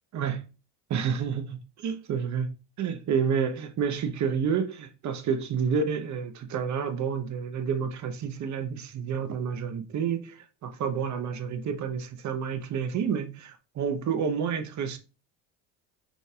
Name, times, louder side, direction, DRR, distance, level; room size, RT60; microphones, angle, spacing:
voice 1, 0.1-0.5 0.9-2.5 2.8-15.0, right 6 dB, 45° right, 0.9 m, -29 dB
5.2 x 3.3 x 2.3 m
supercardioid pair, 80°, 38 cm